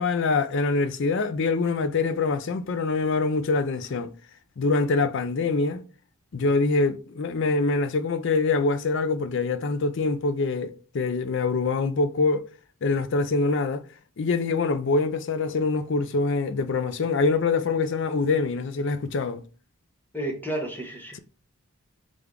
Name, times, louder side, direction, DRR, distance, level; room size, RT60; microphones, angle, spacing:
voice 1, 0.0-4.1 4.6-5.8 6.3-12.5 12.8-13.8 14.2-19.4, left 3 dB, 55° left, 0.4 m, -24 dB
voice 2, 20.1-21.2, right 1 dB, 10° left, 0.8 m, -31 dB
3.5 x 3.4 x 3.6 m
head